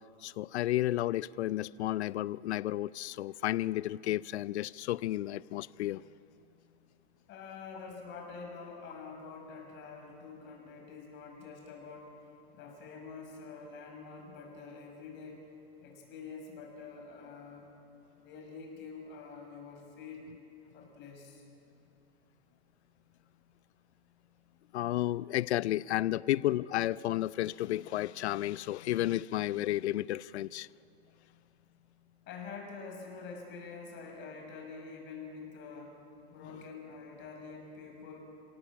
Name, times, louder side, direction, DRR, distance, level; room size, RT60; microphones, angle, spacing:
voice 1, 0.2-6.0 24.7-30.7, left 14 dB, 85° left, 0.6 m, -32 dB
voice 2, 7.3-12.1 12.5-15.5 15.8-17.7 18.2-20.3 20.7-21.4 32.3-36.0 36.3-38.2, left 4 dB, 35° left, 6.2 m, -46 dB
27.5 x 17.5 x 8.6 m
hypercardioid pair, 140°, 33 cm